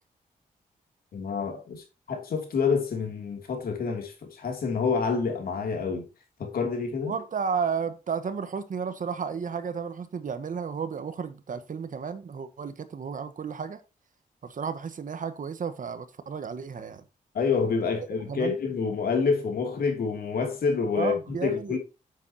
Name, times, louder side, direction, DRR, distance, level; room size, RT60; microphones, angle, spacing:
voice 1, 1.1-6.1 6.4-7.2 17.3-21.1 21.4-21.8, left 5 dB, 85° left, 2.9 m, -27 dB
voice 2, 7.1-13.8 14.4-17.0 18.3-18.6 20.9-21.8, right 6 dB, 60° right, 1.3 m, -33 dB
9.0 x 7.9 x 2.9 m
wide cardioid pair, 100°, 15 cm